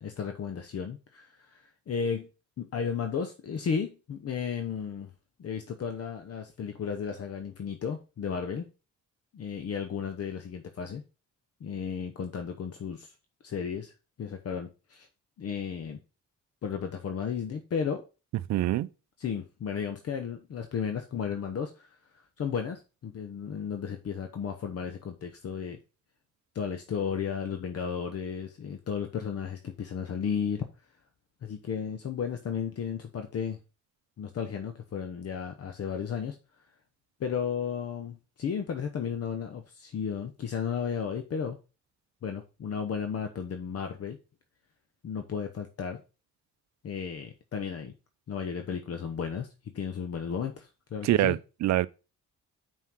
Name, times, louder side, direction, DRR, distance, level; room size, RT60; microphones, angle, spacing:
voice 1, 0.0-2.3 2.6-5.1 5.4-8.6 9.3-11.0 11.6-13.1 13.4-13.9 14.2-15.1 15.4-16.0 16.6-18.0 19.2-21.9 22.4-25.8 26.5-30.7 31.4-33.6 34.2-36.4 37.2-41.6 42.2-44.2 45.0-46.0 46.8-47.9 48.3-49.5 49.7-51.4, left 7 dB, 50° left, 1.0 m, -34 dB
voice 2, 18.5-18.9 51.0-51.9, right 14 dB, 65° right, 0.6 m, -25 dB
5.7 x 4.7 x 6.1 m
cardioid pair, 90°, 30 cm